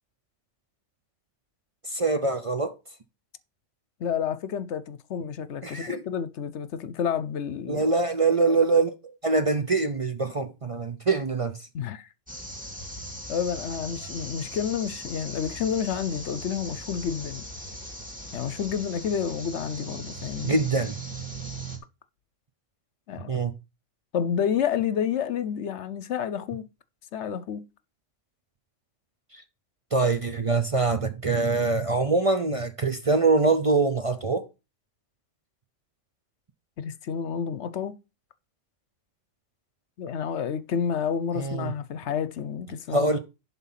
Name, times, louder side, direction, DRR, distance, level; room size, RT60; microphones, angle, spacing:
voice 1, 1.8-2.7 5.6-6.0 7.7-11.6 20.4-21.0 23.3-23.5 29.3-29.4 29.9-34.5 41.3-41.7 42.9-43.2, right 3 dB, 35° right, 0.6 m, -24 dB
voice 2, 4.0-7.8 11.7-12.1 13.3-17.4 18.3-20.6 23.1-23.4 24.1-26.7 27.1-27.6 36.8-37.9 40.0-43.1, left 8 dB, 70° left, 1.0 m, -29 dB
sound 1, 12.3-21.8, right 1 dB, 5° right, 2.0 m, -39 dB
11.0 x 3.9 x 5.8 m
omnidirectional pair, 1.3 m